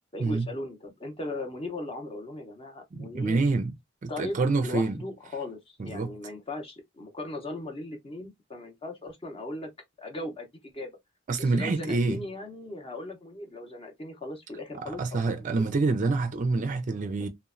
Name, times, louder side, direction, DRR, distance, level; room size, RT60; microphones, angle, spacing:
voice 1, 0.1-3.5 4.1-9.7 10.0-10.9 11.4-15.6, left 1 dB, 25° left, 0.7 m, -38 dB
voice 2, 3.0-3.7 4.0-5.0 5.8-6.1 11.3-12.2 14.9-17.3, right 3 dB, 40° right, 0.4 m, -27 dB
3.0 x 2.1 x 2.4 m
head